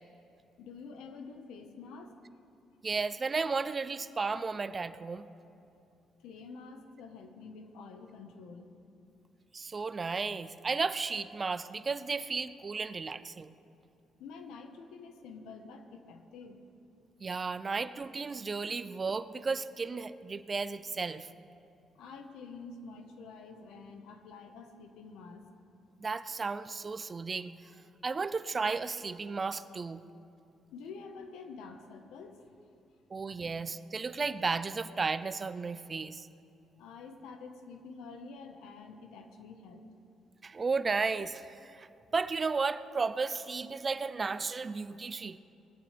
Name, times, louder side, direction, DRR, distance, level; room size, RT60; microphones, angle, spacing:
voice 1, 0.6-2.1 6.2-8.7 14.2-16.6 21.8-25.4 30.7-32.5 36.8-39.9, left 4 dB, 90° left, 6 dB, 1.2 m, -48 dB
voice 2, 2.8-5.3 9.5-13.5 17.2-21.3 26.0-27.5 28.0-30.0 33.1-36.3 40.4-41.9 42.1-45.4, right 4 dB, 35° right, 13 dB, 0.5 m, -34 dB
20.5 x 14.5 x 3.4 m, 2.6 s
cardioid pair, 90°, 0 cm